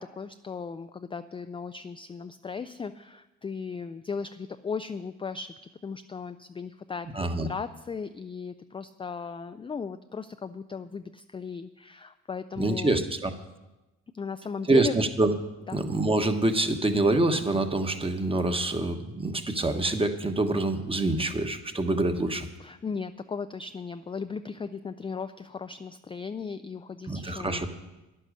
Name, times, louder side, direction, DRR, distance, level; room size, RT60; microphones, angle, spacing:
voice 1, 0.0-5.6 5.8-13.0 14.1-15.0 15.7-15.8 22.6-27.7, left 5 dB, 20° left, 10 dB, 0.3 m, -37 dB
voice 2, 7.1-7.5 12.6-13.3 14.7-15.3 15.7-22.5 27.1-27.7, right 2 dB, 20° right, 7 dB, 1.2 m, -26 dB
10.5 x 10.0 x 6.5 m, 1.1 s
cardioid pair, 90°, 30 cm